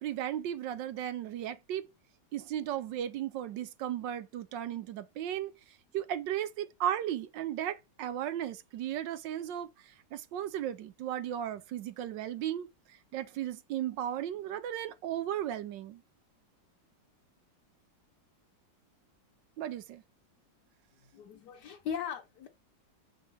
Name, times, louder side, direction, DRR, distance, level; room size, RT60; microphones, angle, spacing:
voice 1, 0.0-1.8 2.3-5.5 5.9-12.7 13.1-16.0 19.6-20.0, right 11 dB, 75° right, 1.3 m, -35 dB
voice 2, 21.0-22.5, left 8 dB, 65° left, 1.4 m, -39 dB
6.9 x 4.2 x 3.4 m
omnidirectional pair, 2.0 m